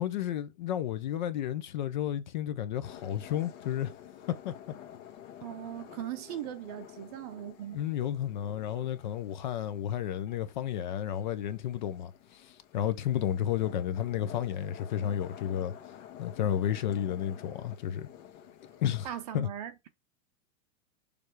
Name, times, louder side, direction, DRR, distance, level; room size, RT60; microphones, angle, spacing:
voice 1, 0.0-4.0 4.3-4.6 7.7-18.1 18.8-19.1 19.3-19.5, left 10 dB, 35° left, 0.5 m, -32 dB
sound 1, 2.8-19.1, left 10 dB, 65° left, 1.7 m, -50 dB
voice 2, 5.4-7.8 19.0-19.9, right 11 dB, 30° right, 0.6 m, -39 dB
6.9 x 3.3 x 4.6 m
supercardioid pair, 175°, 39 cm